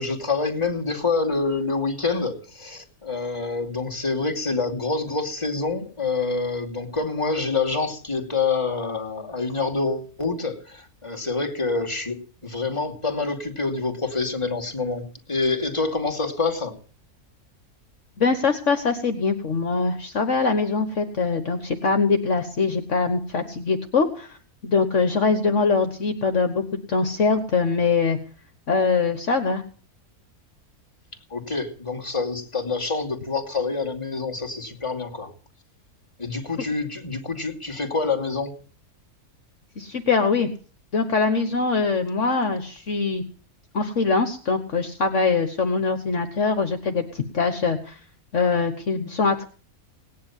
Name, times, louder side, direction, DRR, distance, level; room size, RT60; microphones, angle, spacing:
voice 1, 0.0-12.2 12.4-16.7 31.3-35.3 36.2-38.5, left 3 dB, 20° left, 4 dB, 2.8 m, -26 dB
voice 2, 18.2-24.3 24.6-26.6 26.9-28.2 28.7-29.6 39.8-40.5 40.9-43.2 43.7-48.0 48.3-49.5, left 4 dB, 55° left, 7 dB, 1.6 m, -23 dB
18.5 x 10.5 x 7.2 m, 0.40 s
omnidirectional pair, 1.6 m